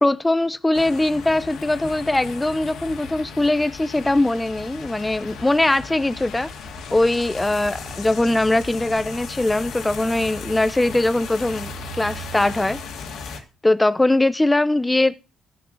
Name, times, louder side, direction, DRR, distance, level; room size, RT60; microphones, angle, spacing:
voice 1, 0.0-6.5 6.9-12.8 13.6-15.2, left 2 dB, 15° left, 0.9 m, -21 dB
sound 1, 0.7-13.4, left 4 dB, 80° left, 2.3 m, -36 dB
14.5 x 5.9 x 6.4 m
cardioid pair, 90°, 0 cm